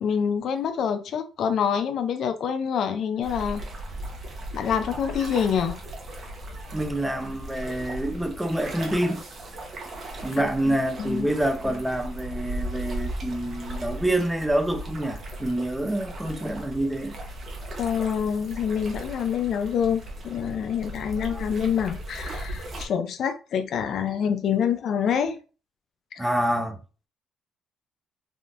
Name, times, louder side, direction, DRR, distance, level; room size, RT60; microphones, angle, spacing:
voice 1, 0.0-3.6 4.5-5.8 10.7-11.3 17.8-25.4 26.2-26.3, left 7 dB, 60° left, 0.4 m, -26 dB
sound 1, 3.2-22.9, right 1 dB, 45° right, 0.9 m, -37 dB
voice 2, 6.7-9.2 10.2-17.1 21.2-21.4 26.2-26.8, right 1 dB, 5° right, 0.6 m, -27 dB
3.5 x 2.5 x 2.5 m
cardioid pair, 105°, 0 cm